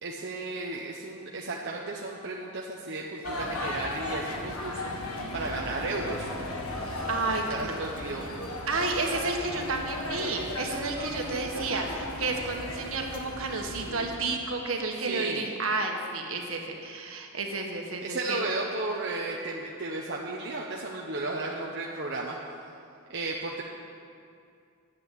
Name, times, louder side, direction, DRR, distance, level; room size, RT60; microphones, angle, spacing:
voice 1, 0.0-6.3 7.3-8.4 15.1-15.4 18.0-22.4 23.1-23.6, right 2 dB, 50° right, -2 dB, 0.9 m, -34 dB
sound 1, 3.2-14.2, left 1 dB, 85° left, 1.6 m, -36 dB
voice 2, 7.1-7.4 8.7-18.4, right 3 dB, 70° right, 2 dB, 1.6 m, -31 dB
10.0 x 8.6 x 8.5 m, 2.4 s
head